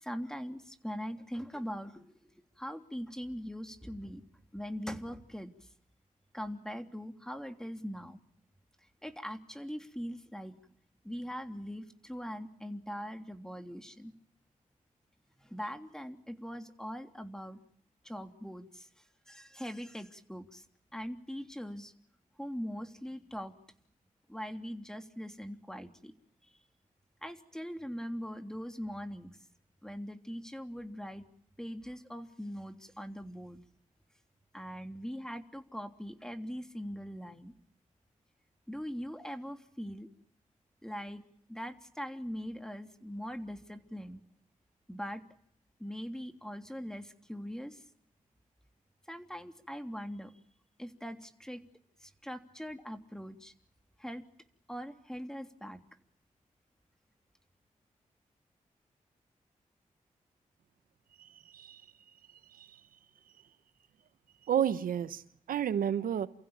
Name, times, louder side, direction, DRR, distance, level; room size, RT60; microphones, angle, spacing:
voice 1, 0.0-2.2 2.6-4.2 4.5-5.5 6.3-8.2 9.0-10.5 11.0-14.1 15.4-17.6 18.0-18.9 19.3-20.6 20.9-21.9 22.4-23.5 24.3-26.1 27.2-29.3 29.8-31.2 31.6-33.6 34.5-37.5 38.7-40.1 40.8-41.2 41.5-44.2 44.9-45.2 45.8-47.8 49.1-50.3 50.8-51.6 52.0-53.5 54.0-54.2 54.7-55.8, equal, 5° left, 3.2 m, -41 dB
voice 2, 61.2-61.8 62.5-62.8 64.5-65.2 65.5-66.3, right 9 dB, 85° right, 1.1 m, -31 dB
29.5 x 15.5 x 8.9 m
cardioid pair, 50°, 14 cm